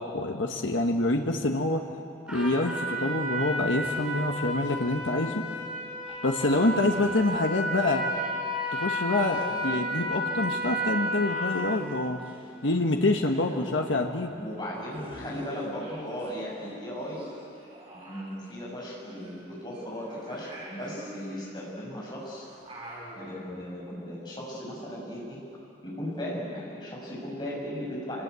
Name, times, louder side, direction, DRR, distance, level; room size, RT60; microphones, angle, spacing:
voice 1, 0.0-1.8 2.3-5.4 6.2-8.0 8.7-12.2 12.6-14.3, left 2 dB, 80° left, 2 dB, 1.4 m, -26 dB
Trumpet, 2.3-11.8, equal, 5° right, 6.0 m, -32 dB
sound 1, 3.8-5.8 6.1-16.3 16.6-23.4, equal, 30° right, 5.2 m, -47 dB
voice 2, 14.4-17.3 17.9-22.5 23.2-25.4 25.8-28.2, equal, 25° left, -5 dB, 7.0 m, -37 dB
26.0 x 20.0 x 8.4 m, 2.6 s
head